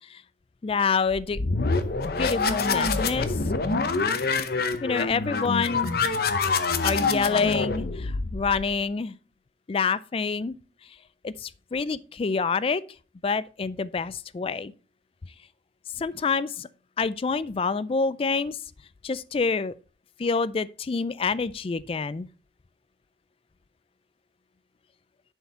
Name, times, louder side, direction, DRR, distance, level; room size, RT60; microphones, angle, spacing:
voice 1, 0.6-1.4 2.2-3.3 4.8-5.9 6.8-9.1 9.7-10.5 11.2-12.8 13.2-14.7 16.0-16.7 17.0-18.6 19.0-19.7 20.2-22.3, left 5 dB, 30° left, 0.3 m, -27 dB
sound 1, 1.1-8.8, left 4 dB, 55° left, 0.7 m, -26 dB
10.0 x 4.6 x 4.3 m
head